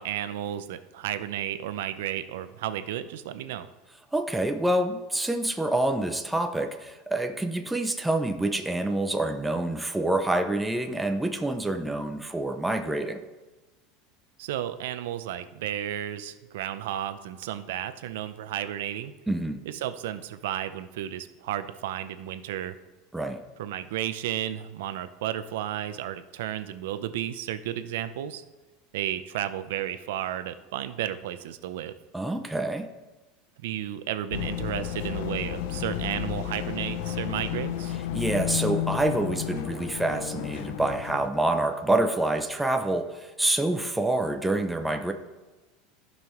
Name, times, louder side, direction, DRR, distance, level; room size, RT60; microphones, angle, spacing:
voice 1, 0.0-3.7 14.4-19.1 19.6-22.8 23.6-28.4 28.9-31.9 33.6-38.0, right 11 dB, 80° right, 12 dB, 0.6 m, -33 dB
voice 2, 4.1-13.2 19.3-19.6 23.1-23.4 32.1-32.9 38.1-45.1, right 2 dB, 5° right, 6 dB, 0.4 m, -27 dB
sound 1, 34.3-41.3, left 12 dB, 60° left, 0.5 m, -32 dB
14.5 x 5.5 x 3.1 m, 1.2 s
supercardioid pair, 170°, 0 cm